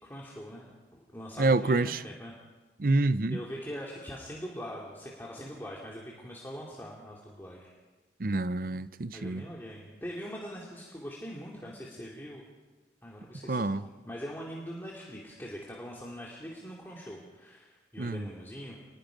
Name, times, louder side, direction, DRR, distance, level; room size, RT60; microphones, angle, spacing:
voice 1, 0.0-2.3 3.3-7.7 9.1-12.4 13.0-18.8, equal, 10° left, 2.6 m, -42 dB
voice 2, 1.4-2.0 2.8-3.4 8.2-9.4 13.5-13.9 18.0-18.3, right 2 dB, 50° right, 0.6 m, -27 dB
28.0 x 21.0 x 5.2 m
head